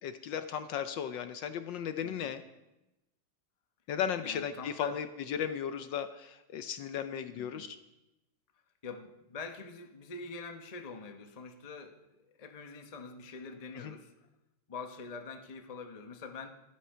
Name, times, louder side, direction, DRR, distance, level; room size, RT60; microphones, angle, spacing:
voice 1, 0.0-2.4 3.9-7.8 13.7-13.9, left 8 dB, 70° left, 10 dB, 1.3 m, -36 dB
voice 2, 2.0-2.3 4.2-5.0 7.3-7.7 8.8-14.1 14.7-16.5, left 4 dB, 30° left, 6 dB, 0.7 m, -45 dB
12.0 x 12.0 x 5.6 m, 0.95 s
omnidirectional pair, 2.3 m